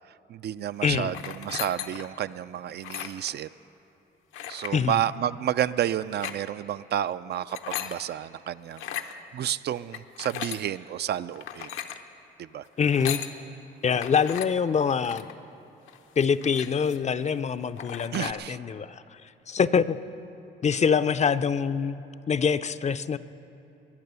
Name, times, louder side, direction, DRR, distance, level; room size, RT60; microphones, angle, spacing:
voice 1, 0.3-3.5 4.5-8.8 9.3-11.7 12.5-12.6 18.1-18.6, right 10 dB, 55° right, 14 dB, 0.4 m, -30 dB
voice 2, 0.8-1.2 4.7-5.0 12.8-13.2 13.8-15.3 16.2-19.2 19.5-20.0 20.6-22.0 22.3-23.2, left 6 dB, 35° left, 14 dB, 0.5 m, -25 dB
sound 1, 1.1-2.2 2.7-3.3 4.3-4.8 6.0-6.4 7.3-8.0 8.7-9.1 9.9-10.6 11.4-12.0 12.8-13.3 14.0-14.5 15.0-15.3 15.9-16.0 16.2-17.1 17.5-17.6 17.8-18.3, left 10 dB, 80° left, 0.8 m, -36 dB
21.5 x 8.6 x 6.9 m, 2.9 s
cardioid pair, 90°, 20 cm